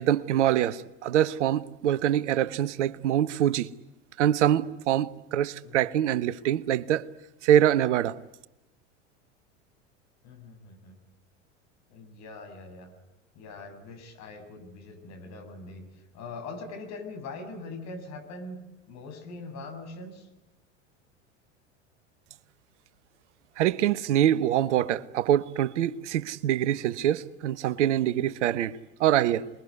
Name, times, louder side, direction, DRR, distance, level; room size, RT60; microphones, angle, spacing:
voice 1, 0.0-3.7 4.2-7.1 7.4-8.2 23.6-29.5, right 11 dB, 70° right, 1.1 m, -24 dB
voice 2, 10.2-11.0 11.9-12.9 13.3-18.6 18.9-20.3, left 3 dB, 45° left, 7.2 m, -42 dB
28.5 x 21.5 x 9.6 m
hypercardioid pair, 85°, 37 cm